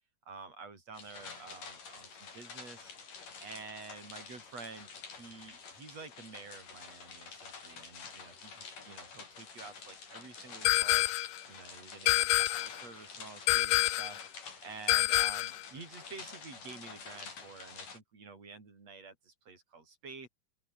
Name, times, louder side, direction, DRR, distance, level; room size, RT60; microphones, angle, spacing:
voice 1, 0.3-11.1 11.5-14.2 14.6-20.3, right 4 dB, 50° right, 7.3 m, -49 dB
sound 1, 0.9-18.0, left 5 dB, 70° left, 6.4 m, -49 dB
sound 2, 10.7-11.4 12.1-12.8 13.5-14.2 14.9-15.6, left 18 dB, 90° left, 2.4 m, -27 dB
open air
omnidirectional pair, 3.8 m